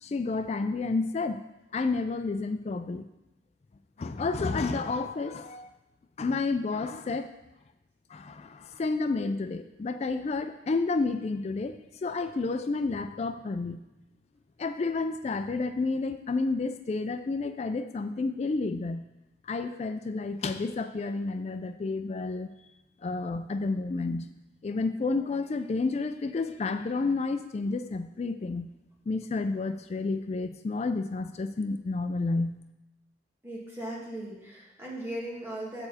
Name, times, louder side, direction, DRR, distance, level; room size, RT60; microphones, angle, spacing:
voice 1, 0.0-1.4 1.7-3.0 4.0-5.7 6.2-7.3 8.1-13.8 14.6-19.0 19.5-22.5 23.0-24.3 24.6-28.7 29.1-32.5, left 3 dB, 35° left, 10 dB, 0.3 m, -30 dB
voice 2, 33.4-35.9, right 1 dB, 15° right, -5 dB, 2.1 m, -38 dB
7.9 x 6.9 x 4.1 m, 0.96 s
head